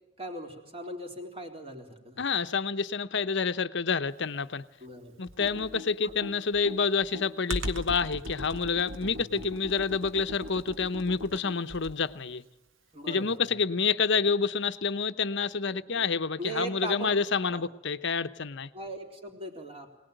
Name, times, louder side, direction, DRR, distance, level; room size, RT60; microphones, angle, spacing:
voice 1, 0.2-2.3 4.8-5.2 6.0-6.1 9.0-9.2 12.9-13.4 15.7-16.0 16.4-17.1 17.5-17.6 18.7-19.9, right 2 dB, 30° right, 3.8 m, -39 dB
voice 2, 2.2-4.6 5.2-12.4 13.1-18.7, left 5 dB, 65° left, 0.9 m, -28 dB
Computer keyboard, 5.3-12.1, equal, 75° right, 1.7 m, -39 dB
23.5 x 19.0 x 9.2 m
head